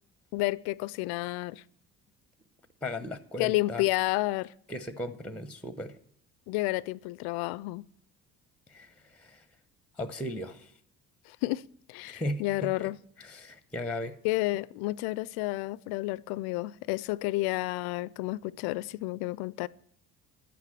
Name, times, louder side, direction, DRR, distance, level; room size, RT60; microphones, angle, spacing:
voice 1, 0.3-1.6 3.4-4.5 6.5-7.8 11.3-11.6 11.9-13.0 14.2-19.7, left 20 dB, 55° left, 0.5 m, -30 dB
voice 2, 2.8-3.8 4.7-6.0 8.7-9.4 10.0-10.7 12.0-12.9 13.2-14.2, left 1 dB, ahead, 0.9 m, -37 dB
11.5 x 9.3 x 7.5 m
figure-of-eight pair, 50°, 45 cm